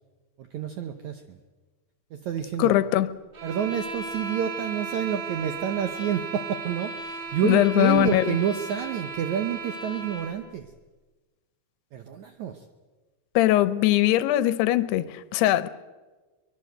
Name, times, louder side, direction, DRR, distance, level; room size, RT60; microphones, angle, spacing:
voice 1, 0.4-1.4 2.1-2.8 3.4-10.7 11.9-12.7, right 9 dB, 75° right, 1.7 m, -29 dB
voice 2, 2.6-3.1 7.4-8.4 13.4-15.7, left 14 dB, 85° left, 2.9 m, -21 dB
sound 1, 3.3-10.4, right 4 dB, 30° right, 3.1 m, -36 dB
23.5 x 20.5 x 7.9 m
omnidirectional pair, 4.6 m